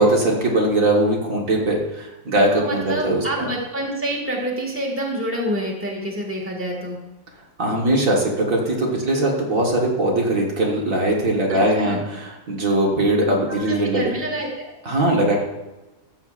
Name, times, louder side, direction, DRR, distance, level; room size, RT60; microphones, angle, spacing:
voice 1, 0.0-3.4 7.6-14.1 14.8-15.4, right 1 dB, 60° right, -2 dB, 1.8 m, -20 dB
voice 2, 2.6-7.0 11.5-12.0 13.5-14.6, right 1 dB, 10° right, -2 dB, 1.7 m, -27 dB
13.5 x 7.7 x 2.5 m, 1.1 s
omnidirectional pair, 1.6 m